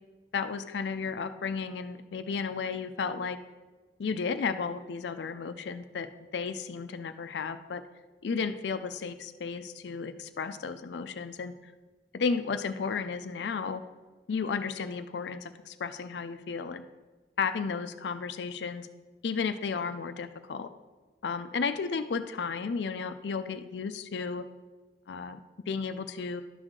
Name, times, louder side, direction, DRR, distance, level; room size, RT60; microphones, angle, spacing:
voice 1, 0.3-3.4 4.0-6.1 6.3-7.8 8.2-11.7 12.1-13.8 14.3-16.8 17.4-18.9 19.2-20.7 21.2-24.5 25.1-25.4 25.7-26.4, left 5 dB, 80° left, 10 dB, 0.4 m, -33 dB
11.5 x 6.3 x 3.7 m, 1.3 s
head